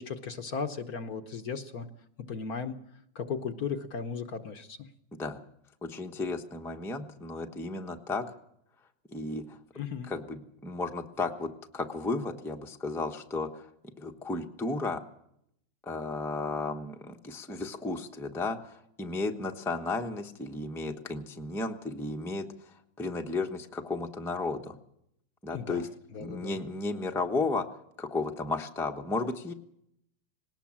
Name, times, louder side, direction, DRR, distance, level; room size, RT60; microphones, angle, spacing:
voice 1, 0.0-1.9 2.3-2.7 3.1-4.9 9.8-10.1 25.5-25.8 26.1-26.6, left 6 dB, 55° left, 8 dB, 1.3 m, -36 dB
voice 2, 5.8-8.2 9.1-13.7 14.0-15.0 15.9-24.8 25.4-25.9 26.2-27.6 28.0-29.5, left 3 dB, ahead, 3 dB, 0.8 m, -34 dB
19.5 x 18.5 x 7.4 m, 0.74 s
omnidirectional pair, 2.2 m